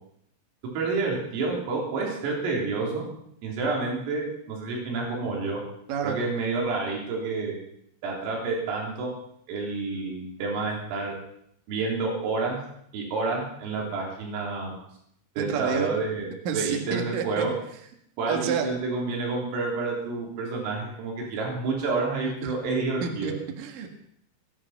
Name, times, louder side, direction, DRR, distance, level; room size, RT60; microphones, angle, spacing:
voice 1, 0.7-3.0 3.4-5.6 6.0-7.6 8.0-9.1 9.5-11.1 11.7-12.6 12.9-14.8 15.4-17.5 18.2-23.4, right 3 dB, 90° right, -2 dB, 6.2 m, -29 dB
voice 2, 15.4-15.9 16.4-17.5 18.3-18.7 22.2-22.5 23.0-23.9, right 7 dB, 55° right, 3 dB, 2.8 m, -30 dB
19.5 x 11.5 x 5.8 m, 0.72 s
omnidirectional pair, 5.7 m